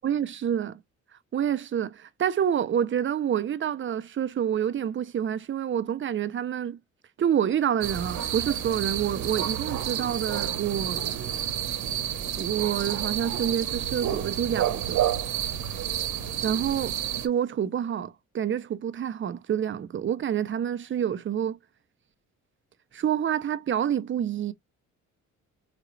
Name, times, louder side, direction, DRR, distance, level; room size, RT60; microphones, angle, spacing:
voice 1, 0.0-0.8 1.3-6.8 7.2-11.0 12.4-15.0 16.4-17.0 17.2-21.6 22.9-24.5, right 9 dB, 40° right, 0.6 m, -28 dB
sound 1, 7.8-17.3, right 10 dB, 70° right, 1.0 m, -30 dB
4.9 x 2.3 x 3.2 m
cardioid pair, 90°, 30 cm